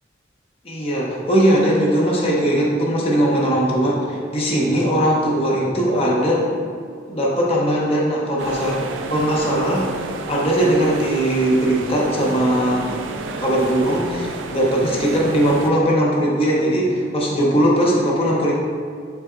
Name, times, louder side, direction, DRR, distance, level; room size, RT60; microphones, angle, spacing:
voice 1, 0.6-6.5 7.1-8.8 9.1-9.9 10.3-12.8 13.3-18.5, right 1 dB, 30° left, -4 dB, 0.6 m, -19 dB
sound 1, 8.4-15.7, right 3 dB, 85° right, 0.4 m, -31 dB
5.6 x 3.3 x 2.4 m, 2.2 s
head